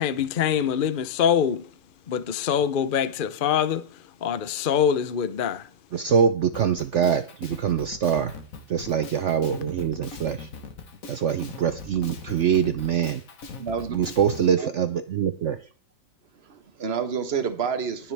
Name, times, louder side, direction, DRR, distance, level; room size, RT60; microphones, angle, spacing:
voice 1, 0.0-1.7 2.1-5.7, left 8 dB, 85° left, 0.4 m, -24 dB
voice 2, 5.9-8.4 8.7-10.5 11.1-13.2 13.9-15.6, right 8 dB, 65° right, 0.7 m, -24 dB
Drum kit, 6.5-14.5, left 4 dB, 50° left, 1.7 m, -40 dB
voice 3, 13.6-13.9 14.6-14.7 16.4-18.1, right 6 dB, 35° right, 1.4 m, -29 dB
20.0 x 6.8 x 3.4 m
omnidirectional pair, 2.0 m